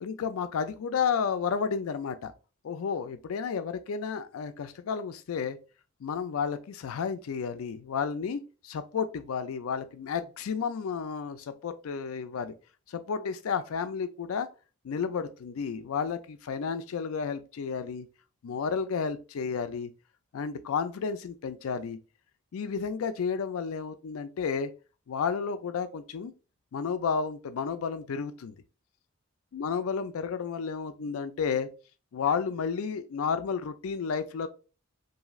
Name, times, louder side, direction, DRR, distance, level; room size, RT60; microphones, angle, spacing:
voice 1, 0.0-2.3 2.6-5.6 6.0-12.5 12.9-14.5 14.8-18.1 18.4-19.9 20.3-22.0 22.5-24.7 25.1-26.3 26.7-28.6 29.5-31.7 32.1-34.5, left 6 dB, 80° left, 0.4 m, -32 dB
2.6 x 2.4 x 3.0 m
head